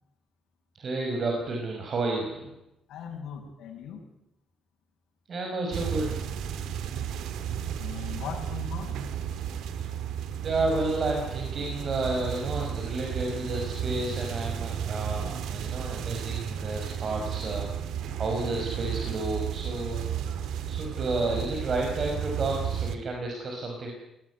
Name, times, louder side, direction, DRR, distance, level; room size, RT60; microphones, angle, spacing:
voice 1, 0.7-2.5 5.3-6.3 9.7-9.9 10.4-17.7 18.1-20.2 20.7-23.9, right 2 dB, 50° right, 1 dB, 5.7 m, -31 dB
voice 2, 2.9-4.0 7.8-9.0, left 7 dB, 80° left, -1 dB, 7.1 m, -39 dB
sound 1, 5.7-23.0, right 8 dB, 85° right, 2.1 m, -33 dB
20.0 x 18.5 x 9.7 m, 0.87 s
cardioid pair, 90°, 0 cm